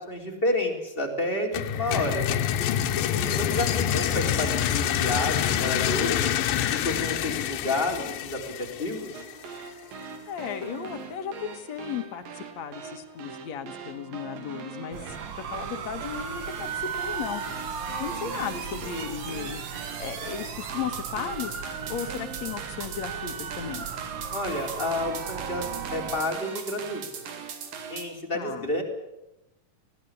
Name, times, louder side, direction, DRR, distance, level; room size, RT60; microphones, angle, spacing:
voice 1, 0.0-2.3 3.1-6.3 6.7-8.4 8.8-9.1 24.3-25.6 25.9-27.0 27.9-28.8, left 1 dB, 15° left, 1 dB, 3.6 m, -30 dB
sound 1, 1.5-9.3, left 10 dB, 85° left, 2.9 m, -27 dB
voice 2, 3.2-3.6 10.3-17.6 18.0-23.9 28.3-28.7, left 8 dB, 55° left, 7 dB, 2.6 m, -36 dB
sound 2, 9.1-28.1, right 6 dB, 85° right, 4.1 m, -39 dB
sound 3, 14.9-26.2, right 7 dB, 55° right, 1.2 m, -37 dB
20.5 x 17.0 x 9.9 m, 0.92 s
omnidirectional pair, 3.9 m